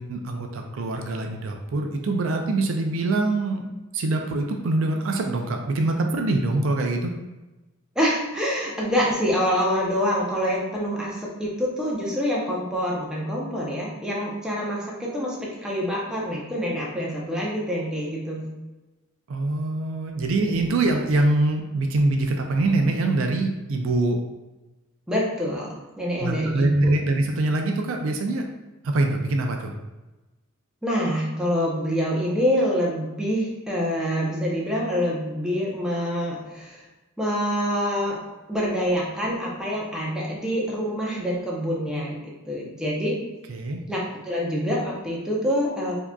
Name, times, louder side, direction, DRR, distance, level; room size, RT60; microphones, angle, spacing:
voice 1, 0.0-3.7 3.9-7.1 19.3-24.2 26.2-28.4 28.8-29.7 43.5-43.8, right 2 dB, 70° right, 3 dB, 0.4 m, -24 dB
voice 2, 8.0-18.5 25.1-26.9 30.8-36.8 37.2-43.2 43.9-46.0, equal, 5° right, -4 dB, 0.7 m, -26 dB
4.6 x 2.8 x 2.3 m, 1.1 s
head